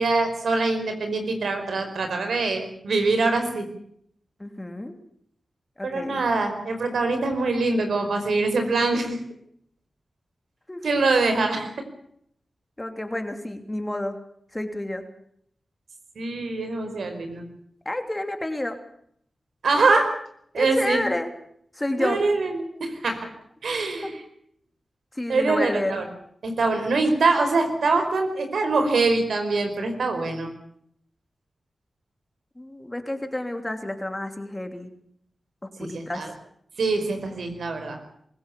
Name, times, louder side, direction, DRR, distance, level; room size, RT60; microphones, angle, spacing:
voice 1, 0.0-3.7 5.8-9.2 10.8-11.7 16.2-17.4 19.6-20.1 20.5-21.0 22.0-23.3 23.6-24.1 25.3-26.0 26.4-30.5 35.9-36.3 36.8-38.0, right 3 dB, 80° right, 6 dB, 4.9 m, -24 dB
voice 2, 4.4-4.9 5.8-6.2 10.7-11.0 12.8-14.2 14.5-15.0 17.8-18.8 20.5-21.3 21.7-22.2 24.0-24.1 25.1-26.0 32.5-34.9 35.6-36.3, left 1 dB, 20° left, 6 dB, 3.1 m, -30 dB
24.0 x 16.0 x 8.4 m, 0.68 s
cardioid pair, 55°, 0 cm